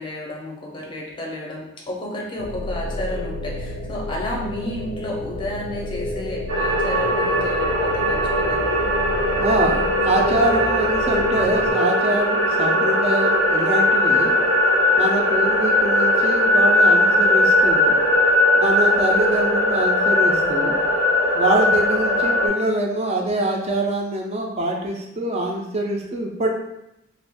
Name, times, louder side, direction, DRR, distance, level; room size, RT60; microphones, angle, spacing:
voice 1, 0.0-8.8, left 1 dB, 25° left, -2 dB, 0.6 m, -32 dB
sound 1, 2.4-11.7, left 2 dB, 90° left, 0.5 m, -30 dB
sound 2, 6.5-22.5, left 1 dB, 75° right, 0.6 m, -19 dB
voice 2, 9.4-14.3 15.0-18.0 18.5-20.8 21.3-26.5, right 1 dB, 35° right, 1 dB, 0.4 m, -24 dB
2.5 x 2.3 x 3.4 m, 0.87 s
head